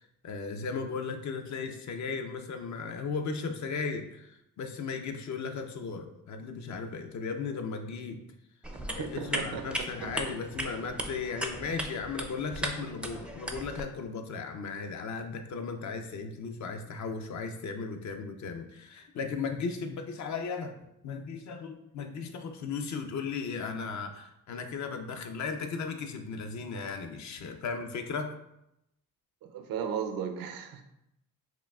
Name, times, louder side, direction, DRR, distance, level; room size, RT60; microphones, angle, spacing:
voice 1, 0.2-8.2 8.9-20.8 21.0-28.3, left 5 dB, 55° left, 6 dB, 0.5 m, -36 dB
sound 1, 8.6-13.8, equal, 5° right, 0.4 m, -37 dB
voice 2, 9.0-10.3 29.4-30.8, right 7 dB, 85° right, 6 dB, 0.6 m, -36 dB
5.8 x 2.4 x 2.3 m, 0.83 s
cardioid pair, 90°, 34 cm